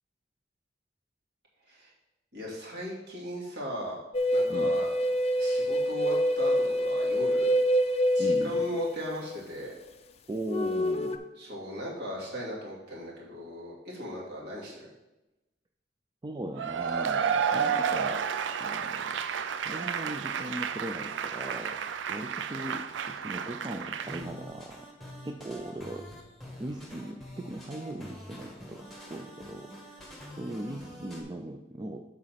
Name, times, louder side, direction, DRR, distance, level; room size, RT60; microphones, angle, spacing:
voice 1, 2.3-4.0 4.3-4.9 5.4-7.5 8.1-9.8 11.4-14.9, equal, 65° right, -4 dB, 2.4 m, -38 dB
sound 1, 4.1-9.7 10.5-11.2, equal, 35° left, 0.5 m, -26 dB
voice 2, 8.2-8.7 10.3-11.2 16.2-18.3 18.6-19.0 19.7-21.8 22.1-24.9 25.2-26.1 26.6-32.0, right 1 dB, 25° right, 4 dB, 0.4 m, -39 dB
Cheering / Applause / Crowd, 16.6-24.2, right 7 dB, 90° right, 0.4 m, -31 dB
sound 2, 24.0-31.2, equal, ahead, 1.3 m, -46 dB
7.5 x 4.1 x 5.8 m, 1.0 s
head